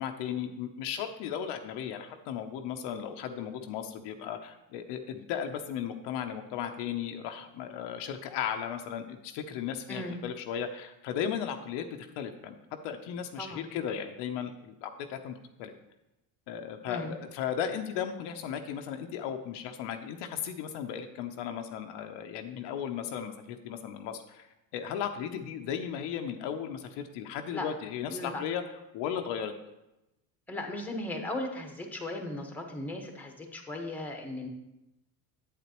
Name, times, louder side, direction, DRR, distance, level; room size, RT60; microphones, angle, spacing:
voice 1, 0.0-12.6 12.8-15.7 16.5-24.5 24.7-28.6 28.9-29.5, left 8 dB, 70° left, 6 dB, 0.8 m, -36 dB
voice 2, 9.9-10.2 13.4-13.7 16.9-17.1 27.5-27.7 28.1-28.4 30.5-34.5, left 1 dB, 5° left, 3 dB, 1.3 m, -37 dB
8.3 x 8.2 x 3.0 m, 0.93 s
supercardioid pair, 100°, 43 cm